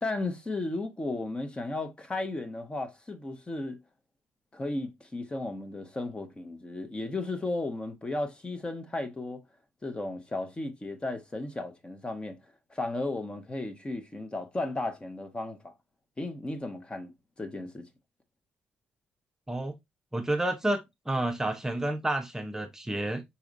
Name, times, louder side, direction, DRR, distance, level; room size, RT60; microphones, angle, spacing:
voice 1, 0.0-3.8 4.5-9.4 9.8-12.4 12.7-15.7 16.2-17.9, left 2 dB, 25° left, 1.1 m, -34 dB
voice 2, 20.1-23.2, right 1 dB, 10° right, 0.8 m, -30 dB
4.7 x 4.3 x 2.6 m
supercardioid pair, 65°, 4 cm